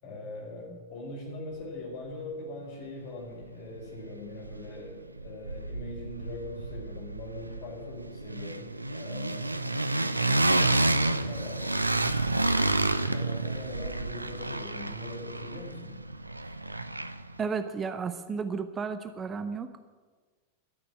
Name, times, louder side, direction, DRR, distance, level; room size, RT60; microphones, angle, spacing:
voice 1, 0.0-9.6 10.3-12.0 13.0-15.9, left 2 dB, 45° left, 0 dB, 4.7 m, -42 dB
sound 1, 3.4-3.5 3.8-4.9 5.2-17.4, right 2 dB, 85° right, 0.5 m, -30 dB
voice 2, 17.4-19.8, right 5 dB, 20° right, 10 dB, 0.7 m, -33 dB
12.5 x 6.9 x 9.6 m, 1.4 s
figure-of-eight pair, 90°, 0 cm